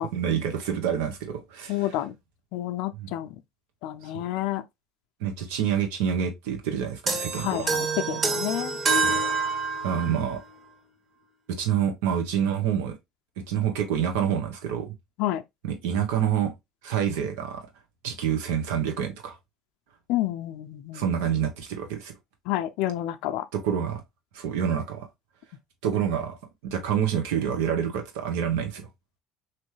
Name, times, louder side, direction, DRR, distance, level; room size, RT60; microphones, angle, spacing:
voice 1, 0.1-1.9 3.0-3.1 4.0-4.2 5.2-7.6 9.0-9.2 9.8-10.4 11.6-13.0 13.5-14.9 15.6-16.5 16.8-17.7 18.0-19.4 20.9-22.1 23.5-24.0 24.3-25.1 25.8-28.9, right 8 dB, 85° right, 1.3 m, -27 dB
voice 2, 1.7-2.2 2.5-3.4 3.8-4.6 7.3-8.8 15.2-15.4 20.1-21.1 22.5-23.5, left 14 dB, 75° left, 0.5 m, -29 dB
sound 1, 7.1-10.3, right 3 dB, 35° right, 1.7 m, -26 dB
4.4 x 3.1 x 3.2 m
supercardioid pair, 100°, 0 cm